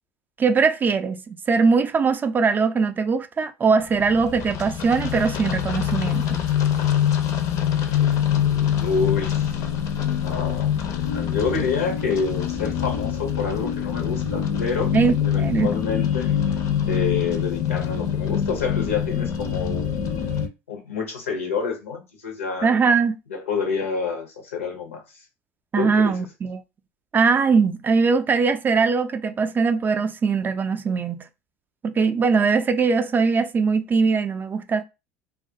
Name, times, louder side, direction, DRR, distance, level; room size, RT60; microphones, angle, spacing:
voice 1, 0.4-6.4 14.9-15.7 22.6-23.2 25.7-26.6 27.1-31.2 31.8-34.8, right 5 dB, 30° right, 0.4 m, -21 dB
sound 1, 3.9-20.5, left 9 dB, 55° left, 0.5 m, -24 dB
voice 2, 8.8-9.5 10.2-10.7 11.1-14.9 15.2-16.3 16.9-22.7 23.3-25.0 25.8-26.2, left 5 dB, 90° left, 0.7 m, -28 dB
2.3 x 2.0 x 2.6 m
hypercardioid pair, 75°, 7 cm